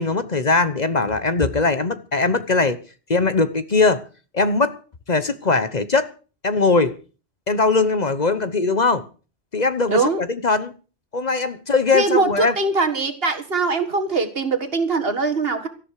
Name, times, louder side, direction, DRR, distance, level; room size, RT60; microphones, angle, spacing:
voice 1, 0.0-2.8 3.1-4.0 4.3-4.8 5.1-6.1 6.4-7.0 7.5-9.1 9.5-10.7 11.1-12.5, left 3 dB, 40° left, 1.0 m, -20 dB
voice 2, 9.9-10.2 11.9-15.7, right 3 dB, 65° right, 2.0 m, -22 dB
17.5 x 13.5 x 4.8 m
omnidirectional pair, 1.1 m